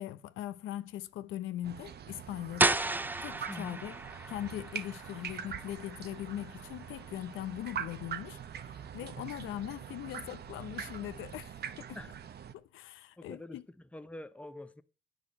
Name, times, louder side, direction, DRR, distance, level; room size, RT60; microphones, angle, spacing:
voice 1, 0.0-2.9 3.2-3.9 4.3-12.0 12.5-13.6, left 13 dB, 85° left, 0.8 m, -41 dB
sound 1, 1.6-12.5, right 8 dB, 55° right, 1.0 m, -43 dB
sound 2, 2.6-8.2, right 2 dB, 10° right, 0.4 m, -35 dB
voice 2, 3.5-3.8 11.9-12.1 13.2-14.8, left 1 dB, 5° left, 0.9 m, -45 dB
9.8 x 6.4 x 7.4 m
cardioid pair, 90°, 20 cm